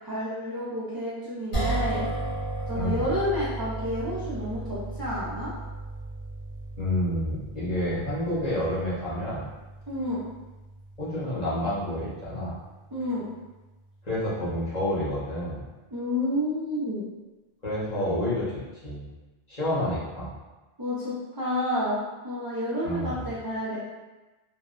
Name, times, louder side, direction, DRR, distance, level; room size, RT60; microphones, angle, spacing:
voice 1, 0.0-2.1 2.7-5.5 9.9-10.2 12.9-13.3 15.9-17.0 20.8-24.0, left 1 dB, 35° right, -9 dB, 0.4 m, -30 dB
sound 1, 1.5-13.8, right 2 dB, 80° left, 1.5 m, -35 dB
voice 2, 2.7-3.1 6.8-9.4 11.0-12.5 14.0-15.6 17.6-18.5 18.8-19.0 19.5-20.3 22.8-23.3, left 1 dB, 45° left, -10 dB, 1.1 m, -29 dB
3.3 x 2.0 x 2.4 m, 1.1 s
omnidirectional pair, 1.0 m